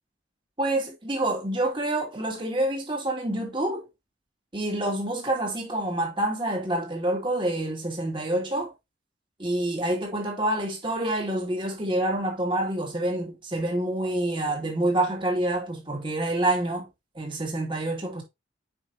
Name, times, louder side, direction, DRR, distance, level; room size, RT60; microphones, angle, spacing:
voice 1, 0.6-3.9 4.5-8.7 9.4-16.9 17.2-18.2, right 1 dB, 25° right, 2.3 m, -27 dB
9.1 x 5.0 x 2.7 m
head